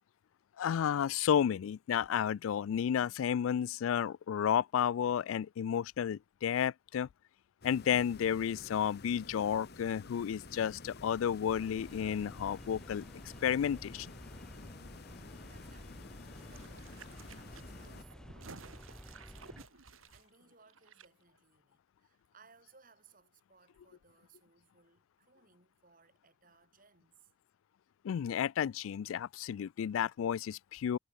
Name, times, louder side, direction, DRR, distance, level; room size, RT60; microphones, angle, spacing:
voice 1, 0.6-7.1 7.6-13.0 13.4-14.1 28.0-31.0, left 8 dB, 80° left, 0.3 m, -32 dB
sound 1, 7.6-18.0, left 3 dB, 50° left, 1.0 m, -51 dB
sound 2, 11.5-19.7, equal, 5° left, 0.4 m, -52 dB
voice 2, 15.3-27.3, right 4 dB, 45° right, 5.0 m, -65 dB
sound 3, 16.2-21.1 21.3-21.4, right 4 dB, 85° right, 1.8 m, -54 dB
head